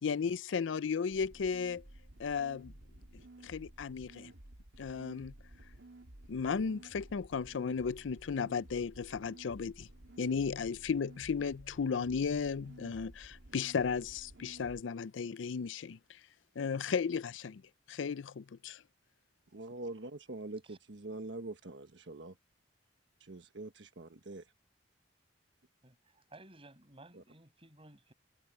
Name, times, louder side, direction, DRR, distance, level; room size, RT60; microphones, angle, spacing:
voice 1, 0.0-1.8 2.2-2.7 3.1-4.3 4.8-5.3 6.3-9.9 10.2-16.2 16.6-17.6 17.9-18.8, left 6 dB, 90° left, 0.5 m, -35 dB
sound 1, 1.1-14.8, right 1 dB, 90° right, 2.2 m, -54 dB
voice 2, 19.5-22.3 23.2-24.4 27.1-27.2, right 2 dB, 70° right, 1.3 m, -44 dB
voice 3, 25.8-28.1, right 2 dB, 30° right, 6.7 m, -57 dB
head